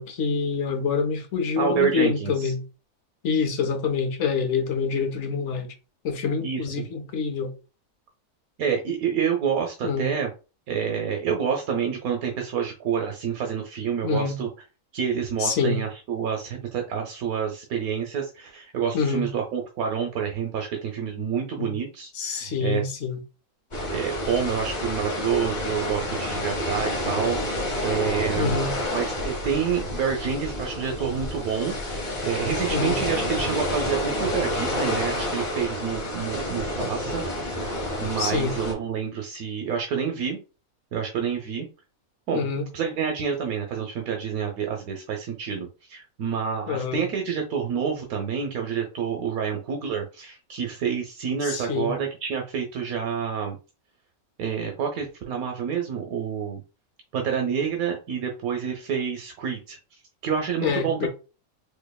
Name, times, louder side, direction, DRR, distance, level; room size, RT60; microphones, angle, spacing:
voice 1, 0.0-2.6 3.2-5.7 6.0-7.5 9.8-10.1 14.0-14.4 15.4-15.8 18.9-19.3 21.6-21.7 22.1-23.2 28.4-28.8 32.7-33.0 38.2-38.5 42.3-42.7 46.7-47.0 51.4-52.0 60.6-61.1, left 5 dB, 60° left, 0.9 m, -26 dB
voice 2, 1.6-2.5 6.4-6.8 8.6-10.3 10.7-14.5 14.9-22.8 23.9-28.6 28.9-37.6 38.0-40.4 40.9-41.7 42.3-42.5 42.7-53.6 54.4-56.6 57.1-59.8 60.2-61.1, right 7 dB, 80° right, 1.1 m, -28 dB
sound 1, 23.7-38.7, left 1 dB, 35° left, 1.0 m, -29 dB
4.4 x 2.6 x 2.2 m
omnidirectional pair, 1.5 m